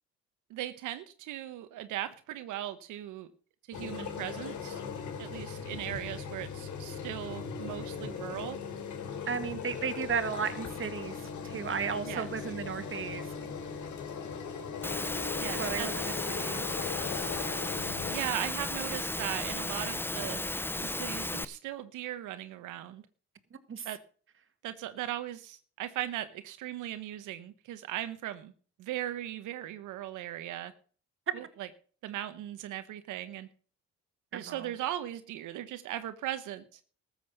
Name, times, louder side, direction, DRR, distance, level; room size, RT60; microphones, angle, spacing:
voice 1, 0.5-3.3 3.7-4.8 5.2-8.6 12.1-12.3 15.4-15.9 18.1-20.4 20.8-23.0 23.8-24.0 24.6-28.5 28.8-30.7 31.3-31.7 32.0-33.5 34.3-36.8, right 13 dB, 90° right, 1.0 m, -38 dB
sound 1, 3.7-18.2, left 6 dB, 75° left, 3.1 m, -39 dB
voice 2, 9.3-13.3 15.6-16.7 23.7-23.9 34.3-34.7, right 6 dB, 45° right, 1.8 m, -35 dB
Engine / Mechanisms, 14.8-21.5, left 2 dB, 5° left, 0.6 m, -34 dB
14.0 x 7.7 x 6.4 m
cardioid pair, 90°, 30 cm